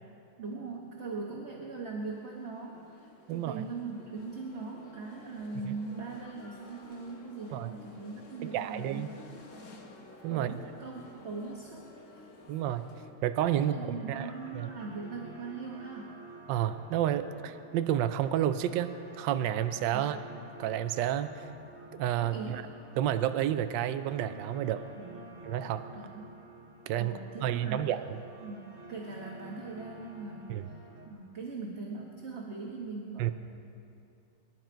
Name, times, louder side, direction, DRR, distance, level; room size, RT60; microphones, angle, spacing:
voice 1, 0.4-9.2 10.3-11.8 12.1-12.3 13.5-16.2 19.9-20.0 22.2-22.6 25.0-25.2 25.9-26.4 27.0-28.0 28.4-30.7 31.1-33.3, right 4 dB, 35° right, -2 dB, 1.2 m, -40 dB
sound 1, 2.0-13.1, left 2 dB, 40° left, 1.4 m, -53 dB
voice 2, 3.3-3.6 5.7-5.8 7.5-7.7 8.4-9.1 10.2-10.5 12.5-12.9 13.2-13.8 14.1-14.7 16.5-20.2 20.6-21.5 21.9-22.6 23.0-24.9 25.4-25.9 26.9-27.1 27.4-28.0 30.5-30.6 33.2-33.3, right 11 dB, 75° right, 10 dB, 1.1 m, -30 dB
sound 2, 13.0-31.1, right 1 dB, 55° right, 2.5 m, -50 dB
25.0 x 11.5 x 4.5 m, 2.7 s
omnidirectional pair, 2.4 m